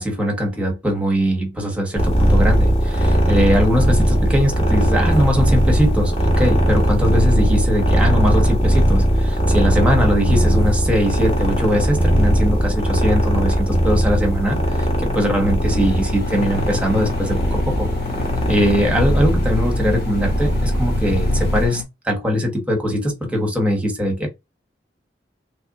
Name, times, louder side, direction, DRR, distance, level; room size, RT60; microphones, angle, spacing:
voice 1, 0.0-17.9 18.5-24.3, equal, 5° right, 1.1 m, -21 dB
sound 1, 2.0-21.7, equal, 35° left, 1.2 m, -18 dB
Engine, 15.7-21.8, left 6 dB, 60° left, 1.1 m, -30 dB
3.2 x 2.6 x 3.6 m
head